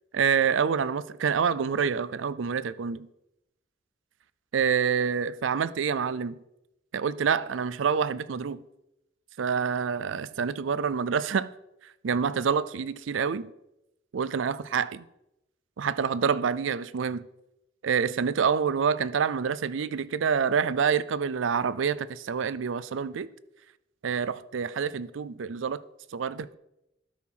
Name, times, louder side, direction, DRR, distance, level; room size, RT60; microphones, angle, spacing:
voice 1, 0.1-3.1 4.5-6.4 6.9-8.6 9.4-11.5 12.0-13.5 14.1-15.0 15.8-17.2 17.8-23.3 24.0-25.8 26.1-26.5, right 6 dB, 85° right, 0.4 m, -27 dB
12.5 x 4.6 x 5.6 m
head